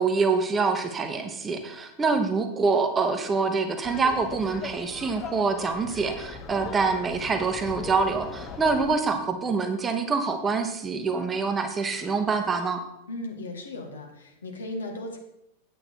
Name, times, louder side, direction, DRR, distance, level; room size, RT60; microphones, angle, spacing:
voice 1, 0.0-12.8, right 4 dB, 20° right, 6 dB, 1.1 m, -25 dB
Laughter, 3.8-8.9, left 5 dB, 25° left, 1.0 m, -40 dB
voice 2, 13.1-15.2, left 2 dB, 70° left, 3 dB, 1.8 m, -36 dB
9.0 x 8.6 x 4.5 m, 0.83 s
figure-of-eight pair, 90°, 0 cm